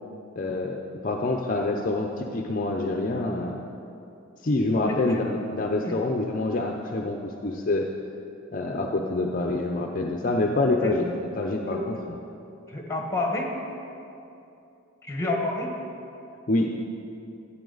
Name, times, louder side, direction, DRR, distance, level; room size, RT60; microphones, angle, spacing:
voice 1, 0.4-3.6 4.4-7.9 8.5-12.2 16.5-16.7, left 2 dB, 40° left, 2 dB, 0.6 m, -26 dB
voice 2, 4.9-5.2 5.8-6.0 8.6-8.7 10.8-10.9 11.7-11.8 12.7-13.5 15.0-15.7, left 2 dB, 15° left, 1 dB, 1.3 m, -29 dB
14.0 x 8.5 x 3.9 m, 2.7 s
head